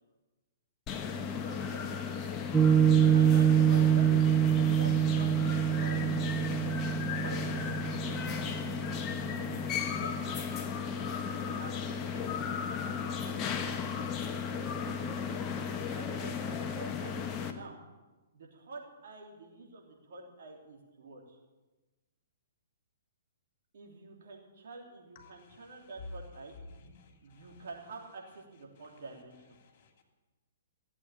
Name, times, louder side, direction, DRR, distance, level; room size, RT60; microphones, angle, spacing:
sound 1, 0.9-17.5, left 6 dB, 25° left, 1.3 m, -35 dB
voice 1, 1.4-2.2 3.1-4.4 4.7-6.0 7.2-8.5 9.2-10.6 11.4-12.4 14.5-15.3 15.6-17.2 17.5-17.8 18.3-21.4 23.7-26.5 27.2-29.6, right 3 dB, 60° right, 0 dB, 3.3 m, -48 dB
Piano, 2.5-9.2, right 9 dB, 10° right, 0.6 m, -26 dB
voice 2, 25.1-25.9 26.8-27.7 29.6-30.0, left 4 dB, 50° left, 3 dB, 2.8 m, -60 dB
15.5 x 8.5 x 8.8 m, 1.2 s
figure-of-eight pair, 120°, 0 cm